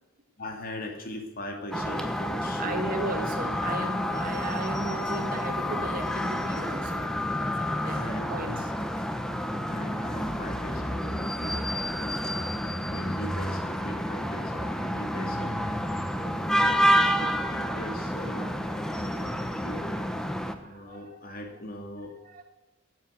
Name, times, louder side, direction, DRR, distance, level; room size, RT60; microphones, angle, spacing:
voice 1, 0.4-3.0 7.9-9.1 9.7-12.5 12.9-15.6 16.2-20.0 20.6-22.1, left 1 dB, 50° left, 2.3 m, -40 dB
sound 1, 1.7-20.6, equal, 5° left, 0.9 m, -29 dB
voice 2, 2.6-8.7 12.1-12.8 16.0-16.3 20.6-21.2 22.2-22.4, right 2 dB, 45° right, 1.7 m, -37 dB
15.5 x 7.7 x 8.3 m
head